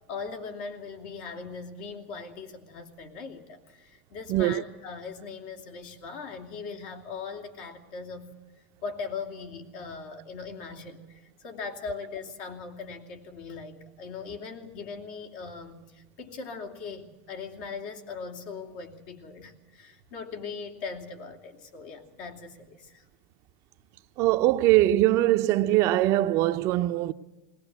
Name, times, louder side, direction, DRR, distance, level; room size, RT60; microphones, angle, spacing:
voice 1, 0.1-8.3 8.8-23.0, left 5 dB, 65° left, 3.0 m, -40 dB
voice 2, 4.3-4.6 24.2-27.1, right 15 dB, 50° right, 0.7 m, -22 dB
20.0 x 18.5 x 8.2 m
supercardioid pair, 120°, 6 cm